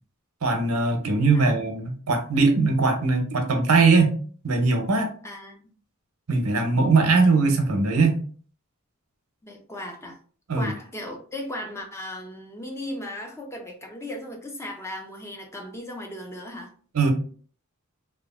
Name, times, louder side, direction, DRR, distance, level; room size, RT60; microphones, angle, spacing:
voice 1, 0.4-4.1 4.4-5.1 6.3-8.2 10.5-10.7 16.9-17.1, right 3 dB, 85° right, 4 dB, 0.7 m, -20 dB
voice 2, 5.2-5.7 9.4-10.2 10.5-16.7, left 1 dB, 15° left, 2 dB, 0.4 m, -36 dB
2.9 x 2.4 x 2.4 m, 0.44 s
head